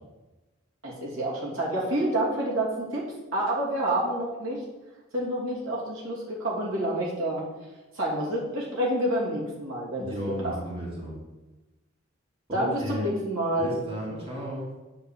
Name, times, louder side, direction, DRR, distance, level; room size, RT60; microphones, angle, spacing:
voice 1, 0.8-3.1 3.3-4.6 5.1-7.4 7.9-10.1 10.4-10.5 12.5-13.7, right 1 dB, 80° right, -5 dB, 2.8 m, -28 dB
voice 2, 10.0-11.2 12.5-13.1 13.6-14.7, equal, 25° right, -5 dB, 2.4 m, -34 dB
8.8 x 4.2 x 6.9 m, 1.1 s
head